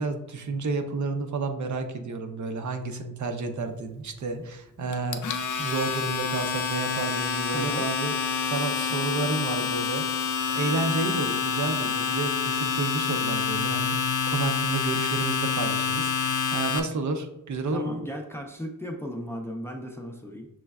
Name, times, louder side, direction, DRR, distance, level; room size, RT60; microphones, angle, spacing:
voice 1, 0.0-5.2 5.6-8.1 8.4-10.2 10.5-14.0 14.2-18.0, right 3 dB, 60° right, 6 dB, 0.5 m, -31 dB
Domestic sounds home sounds, 4.9-16.8, left 6 dB, 65° left, 0.5 m, -27 dB
voice 2, 7.5-7.9 17.7-20.5, left 1 dB, 10° left, 1 dB, 0.4 m, -35 dB
6.1 x 3.1 x 2.3 m, 0.90 s
wide cardioid pair, 175°, 33 cm